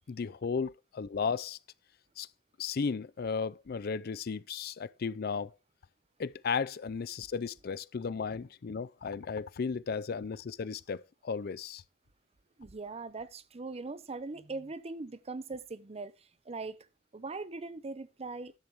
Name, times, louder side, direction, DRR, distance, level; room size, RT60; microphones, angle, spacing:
voice 1, 0.1-1.6 2.2-2.3 2.6-5.5 6.2-11.8, left 5 dB, 55° left, 0.4 m, -35 dB
voice 2, 12.6-16.9 17.1-18.5, right 3 dB, 35° right, 0.6 m, -41 dB
10.5 x 6.9 x 4.7 m
head